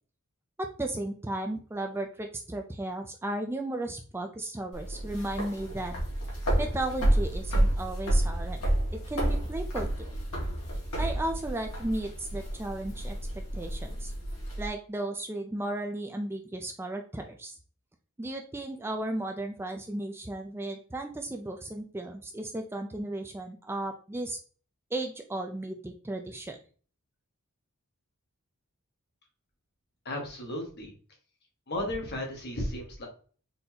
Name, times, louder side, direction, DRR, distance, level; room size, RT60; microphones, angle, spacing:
voice 1, 0.6-5.9 6.6-8.6 8.9-9.9 11.0-14.1 14.6-17.6 18.2-24.4 24.9-26.6, right 1 dB, 10° right, 3 dB, 0.3 m, -35 dB
sound 1, 4.7-14.7, right 1 dB, 75° left, 1.8 m, -30 dB
voice 2, 30.0-30.9 31.7-33.1, left 1 dB, 50° left, 0 dB, 1.4 m, -34 dB
4.2 x 3.9 x 2.8 m, 0.41 s
head